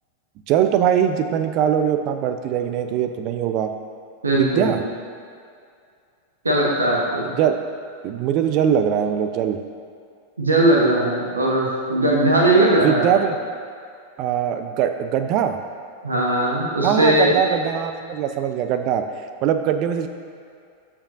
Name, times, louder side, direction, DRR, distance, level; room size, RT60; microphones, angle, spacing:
voice 1, 0.5-3.7 4.4-4.8 7.4-7.6 8.0-9.6 12.8-13.4 14.2-15.6 16.8-19.0 19.4-20.1, right 9 dB, 40° right, 8 dB, 0.5 m, -21 dB
voice 2, 4.2-4.7 6.4-7.3 10.4-13.1 16.0-17.3, right 1 dB, 75° right, -2 dB, 1.1 m, -19 dB
14.0 x 5.0 x 2.6 m, 2.3 s
figure-of-eight pair, 90°, 0 cm